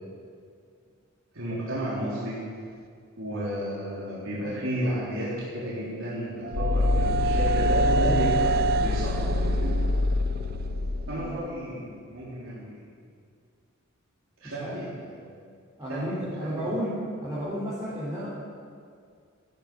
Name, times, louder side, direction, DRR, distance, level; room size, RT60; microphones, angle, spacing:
voice 1, 1.3-2.4 3.2-9.6 11.1-12.8 14.4-15.4 15.9-16.7, right 1 dB, 75° right, -9 dB, 4.0 m, -32 dB
sound 1, 5.6-11.5, right 4 dB, 50° right, 0.4 m, -29 dB
sound 2, 6.5-11.4, left 3 dB, 50° left, 0.5 m, -26 dB
voice 2, 14.4-14.8 15.8-18.3, equal, 15° right, -9 dB, 3.4 m, -32 dB
14.5 x 11.5 x 6.3 m, 2.2 s
head